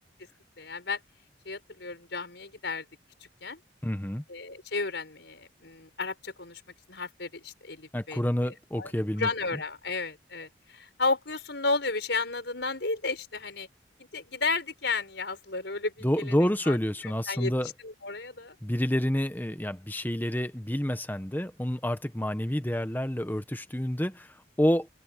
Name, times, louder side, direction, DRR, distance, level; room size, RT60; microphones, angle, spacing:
voice 1, 0.6-1.0 1.4-2.8 3.4-3.6 4.3-6.6 6.9-8.9 9.2-13.7 14.1-16.8 17.3-17.5 17.8-18.5, left 3 dB, 70° left, 5.0 m, -33 dB
voice 2, 3.8-4.2 7.9-9.3 16.0-17.7 18.6-24.9, equal, 10° left, 1.2 m, -28 dB
open air
head